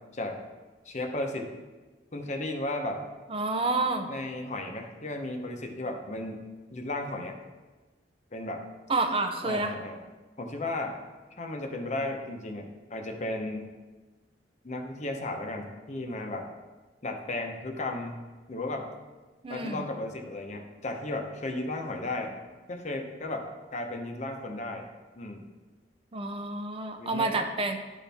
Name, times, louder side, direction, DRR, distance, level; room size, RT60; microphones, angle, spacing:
voice 1, 0.9-1.5 2.1-3.0 4.1-6.4 6.7-7.4 8.3-8.6 9.4-10.0 10.4-11.0 11.4-13.7 14.6-16.5 17.0-18.2 18.5-18.9 19.5-22.4 22.7-24.9 25.2-25.5 27.0-27.4, left 2 dB, 40° left, 3 dB, 0.8 m, -34 dB
voice 2, 3.3-4.1 8.9-9.7 19.4-19.9 26.1-27.8, right 3 dB, 30° right, 5 dB, 0.5 m, -29 dB
11.0 x 4.2 x 3.5 m, 1.2 s
head